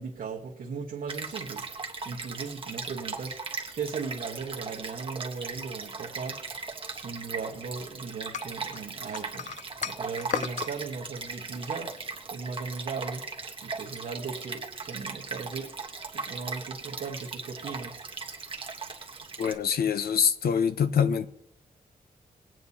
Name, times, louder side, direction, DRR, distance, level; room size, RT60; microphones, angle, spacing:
voice 1, 0.0-3.3 3.7-6.4 6.9-9.5 9.8-11.9 12.3-13.2 13.6-15.7 16.1-18.0, right 5 dB, 75° right, 1.3 m, -37 dB
Stream, 1.1-19.5, right 4 dB, 35° right, 1.2 m, -38 dB
sound 1, 8.3-10.7, left 8 dB, 55° left, 0.4 m, -35 dB
voice 2, 19.4-21.3, left 7 dB, 90° left, 0.7 m, -25 dB
19.5 x 9.0 x 2.8 m
wide cardioid pair, 165°, 15 cm